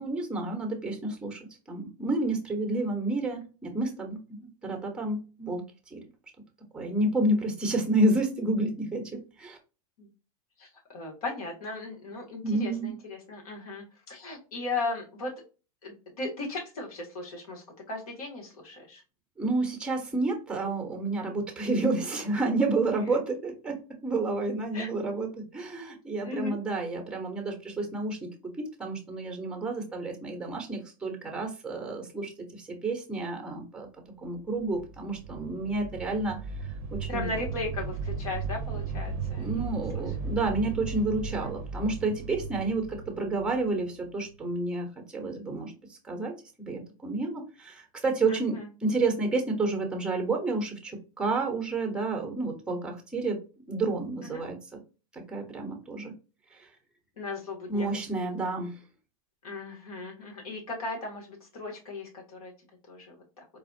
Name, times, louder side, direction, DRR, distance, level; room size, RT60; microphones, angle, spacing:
voice 1, 0.0-6.0 6.7-9.6 12.4-12.9 19.4-28.3 28.6-33.9 34.2-36.4 36.9-37.3 39.4-46.3 46.6-53.4 53.7-54.6 55.1-56.1 56.6-56.7 57.7-58.7, right 2 dB, 5° right, 3 dB, 0.9 m, -30 dB
voice 2, 10.6-15.3 15.8-19.0 24.7-24.9 26.2-26.5 37.1-39.6 41.3-41.5 48.3-48.7 54.2-54.4 57.2-57.9 59.4-62.5 62.9-63.1, left 3 dB, 85° left, 0 dB, 1.6 m, -37 dB
sound 1, 34.5-44.4, right 5 dB, 55° right, 0.5 m, -36 dB
4.2 x 2.4 x 2.6 m, 0.33 s
supercardioid pair, 135°, 18 cm